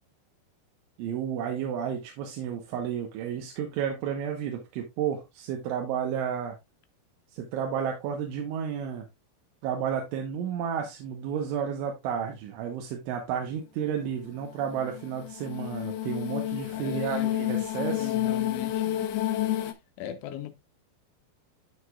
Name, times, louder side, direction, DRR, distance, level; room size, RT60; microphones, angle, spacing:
voice 1, 1.0-6.6 7.3-9.1 9.6-18.1, right 8 dB, 85° right, 3.5 m, -32 dB
sound 1, 14.3-19.7, left 12 dB, 75° left, 2.5 m, -30 dB
voice 2, 16.7-17.3 17.8-19.1 20.0-20.5, left 9 dB, 90° left, 3.4 m, -39 dB
13.0 x 4.9 x 2.4 m
omnidirectional pair, 5.5 m